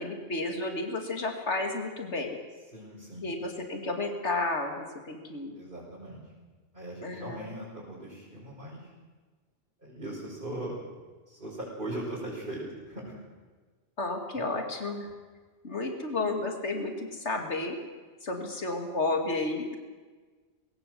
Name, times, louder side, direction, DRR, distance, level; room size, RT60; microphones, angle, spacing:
voice 1, 0.0-2.4 3.2-5.6 7.0-7.6 14.0-15.1 15.6-17.8 18.2-19.8, left 2 dB, 85° left, 3 dB, 2.9 m, -32 dB
voice 2, 2.7-3.3 5.5-6.2 6.7-8.8 9.8-10.8 11.3-13.2 14.4-14.5, right 1 dB, 45° right, -7 dB, 5.6 m, -39 dB
21.0 x 17.5 x 7.7 m, 1.4 s
omnidirectional pair, 1.1 m